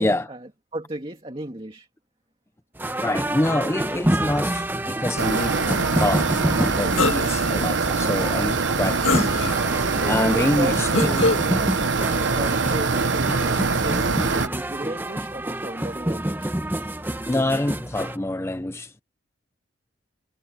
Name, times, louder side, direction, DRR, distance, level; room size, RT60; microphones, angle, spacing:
voice 1, 0.0-1.9 9.9-16.6, right 1 dB, 30° right, 2.4 m, -34 dB
sound 1, 2.7-18.2, right 1 dB, 10° right, 1.0 m, -28 dB
voice 2, 3.0-9.3 9.6-11.2 17.3-19.0, left 1 dB, 15° left, 0.6 m, -26 dB
sound 2, 5.2-14.5, right 4 dB, 75° right, 1.1 m, -23 dB
sound 3, 6.9-7.5 8.1-8.2 9.0-9.8 10.9-11.5, left 3 dB, 90° left, 2.2 m, -24 dB
head